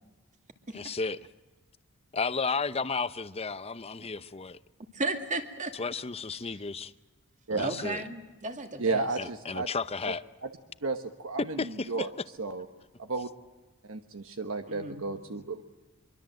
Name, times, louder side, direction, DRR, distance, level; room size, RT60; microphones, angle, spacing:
voice 1, 0.7-1.2 2.1-4.6 5.8-6.9 7.5-8.0 9.2-10.2 11.4-12.1, left 4 dB, 30° left, 0.7 m, -33 dB
voice 2, 4.9-5.7 6.5-6.6 7.6-9.1 14.7-15.1, right 2 dB, 35° right, 2.3 m, -35 dB
voice 3, 8.8-9.7 10.0-10.1 10.8-12.1 12.4-12.7 13.0-13.3 13.9-15.6, right 3 dB, 65° right, 1.2 m, -32 dB
24.5 x 23.5 x 7.7 m
head